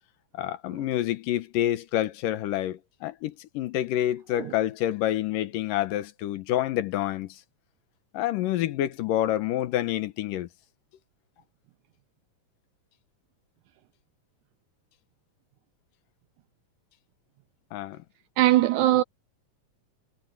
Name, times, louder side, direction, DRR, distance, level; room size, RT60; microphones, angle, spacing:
voice 1, 0.3-7.4 8.1-10.5 17.7-18.0, left 13 dB, 90° left, 2.7 m, -28 dB
voice 2, 18.4-19.0, right 15 dB, 85° right, 1.7 m, -20 dB
omnidirectional pair, 3.8 m